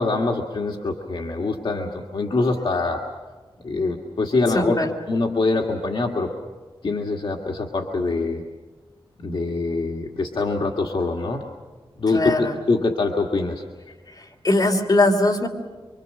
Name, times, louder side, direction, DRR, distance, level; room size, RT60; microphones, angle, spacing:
voice 1, 0.0-3.0 3.6-6.3 6.8-8.4 9.2-11.5 12.0-13.6, left 3 dB, 65° left, 0 dB, 1.7 m, -24 dB
voice 2, 4.5-4.9 12.1-12.6 14.1-15.5, left 2 dB, 45° left, 3 dB, 3.0 m, -20 dB
25.0 x 25.0 x 6.6 m, 1.4 s
wide cardioid pair, 120°, 9 cm